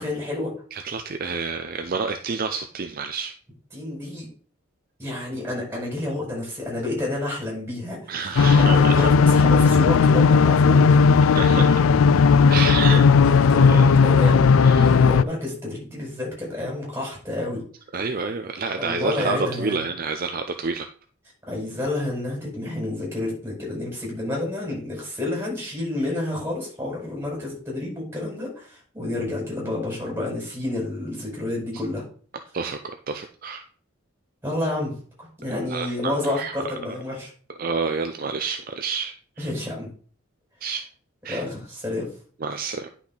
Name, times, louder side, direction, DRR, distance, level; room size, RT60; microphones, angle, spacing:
voice 1, 0.0-0.5 3.7-4.3 5.0-10.8 12.5-13.7 14.0-17.6 18.8-19.8 21.5-32.0 34.4-34.9 35.2-37.3 39.4-39.9 41.3-42.1, left 2 dB, 10° right, -3 dB, 5.2 m, -29 dB
voice 2, 0.7-3.3 8.1-9.1 11.3-11.8 12.5-13.1 13.6-13.9 14.6-14.9 17.9-20.9 32.5-32.8 33.1-33.6 35.7-36.5 37.6-39.5 40.6-40.8 41.2-41.4 42.4-42.9, right 4 dB, 45° right, 7 dB, 0.5 m, -29 dB
sound 1, 8.4-15.2, left 5 dB, 90° left, 0.4 m, -15 dB
10.0 x 6.1 x 3.9 m, 0.44 s
head